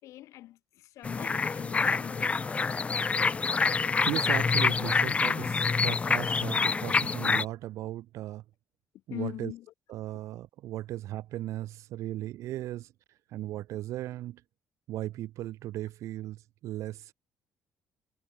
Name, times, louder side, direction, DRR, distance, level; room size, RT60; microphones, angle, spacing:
voice 1, 0.0-2.5 9.1-9.7, left 14 dB, 85° left, 3.5 m, -43 dB
sound 1, 1.0-7.4, left 4 dB, 25° left, 0.6 m, -27 dB
voice 2, 4.0-8.4 9.1-9.5 9.9-12.9 13.3-14.4 14.9-17.1, right 14 dB, 80° right, 2.9 m, -37 dB
cardioid pair, 125°, 5 cm